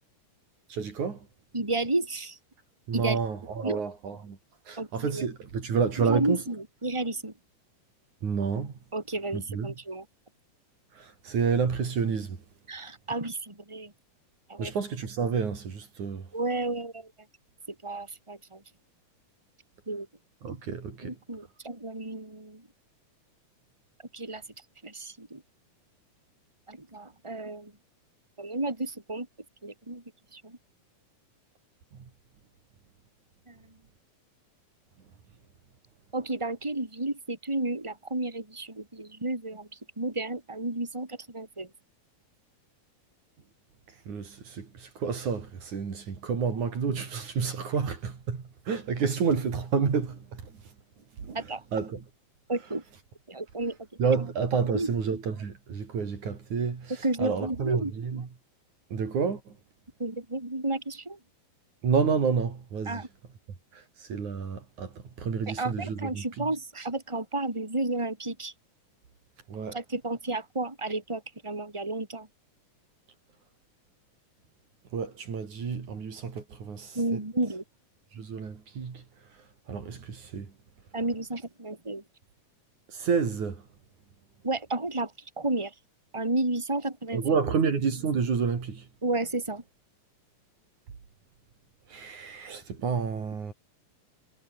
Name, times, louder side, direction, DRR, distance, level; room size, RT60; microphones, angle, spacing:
voice 1, 0.7-1.3 2.9-4.4 4.7-6.4 8.2-8.7 9.3-9.7 11.0-12.4 14.6-16.3 20.4-21.2 44.1-50.5 51.2-52.1 54.0-58.3 58.9-59.6 61.8-63.1 63.7-66.5 69.5-69.8 74.9-77.2 78.1-79.0 79.7-80.5 82.9-83.6 87.1-88.9 91.9-93.5, right 6 dB, 70° right, 5.0 m, -30 dB
voice 2, 1.5-2.4 2.9-3.2 3.6-3.8 4.8-5.3 6.0-7.3 8.9-10.1 12.7-13.9 14.5-14.7 16.3-17.1 17.8-18.6 19.9-20.1 21.0-22.6 24.1-24.4 24.8-25.4 26.7-27.7 28.4-29.3 29.6-30.0 30.3-30.6 33.5-33.6 36.1-39.7 40.0-41.7 51.3-51.6 52.5-52.8 53.3-53.8 54.7-54.9 57.0-57.9 60.0-61.2 62.9-63.1 65.5-68.5 69.7-72.3 76.9-77.6 80.9-82.0 84.4-85.1 85.4-85.7 86.1-87.2 89.0-89.6, right 2 dB, 10° right, 4.4 m, -32 dB
omnidirectional pair, 3.6 m